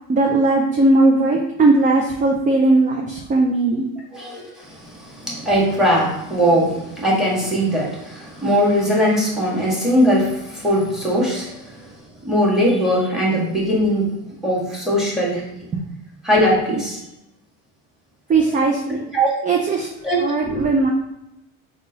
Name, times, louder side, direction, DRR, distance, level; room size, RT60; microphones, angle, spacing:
voice 1, 0.1-3.9 15.7-15.8 18.3-19.1 19.4-19.9 20.2-20.9, right 2 dB, 20° right, 1 dB, 0.4 m, -18 dB
voice 2, 4.1-14.2 14.4-15.5 16.2-17.0 19.1-19.3 20.0-20.6, equal, ahead, -4 dB, 1.5 m, -20 dB
3.7 x 2.6 x 3.8 m, 0.89 s
supercardioid pair, 95°, 42 cm